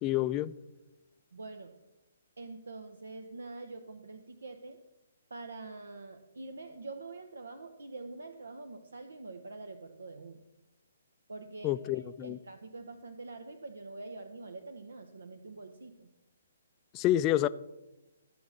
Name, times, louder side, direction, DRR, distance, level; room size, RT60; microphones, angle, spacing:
voice 1, 0.0-0.5 11.6-12.4 16.9-17.5, left 13 dB, 25° left, 0.4 m, -28 dB
voice 2, 1.3-1.8 2.4-4.8 5.3-10.4 11.3-16.1, right 3 dB, 75° right, 0.8 m, -45 dB
14.0 x 6.1 x 6.5 m
figure-of-eight pair, 135°, 0 cm